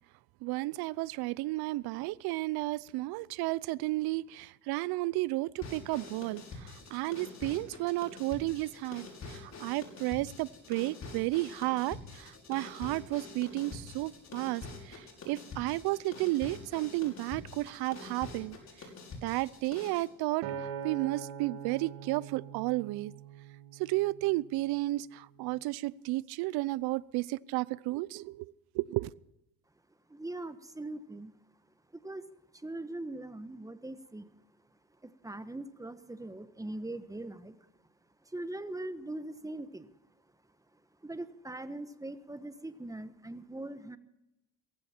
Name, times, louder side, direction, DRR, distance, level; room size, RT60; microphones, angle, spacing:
voice 1, 0.4-18.6 19.2-20.5 20.8-23.1 23.8-29.1, right 19 dB, 65° right, 0.7 m, -33 dB
sound 1, 5.6-20.1, left 3 dB, 40° left, 5.6 m, -46 dB
Acoustic guitar, 20.4-24.8 25.4-25.6, right 7 dB, 85° right, 2.4 m, -43 dB
voice 2, 30.1-31.3 32.0-32.2 32.5-34.3 35.0-37.5 38.3-39.9 41.0-44.0, right 2 dB, 10° right, 1.2 m, -41 dB
17.0 x 15.5 x 4.5 m
supercardioid pair, 90°, 40 cm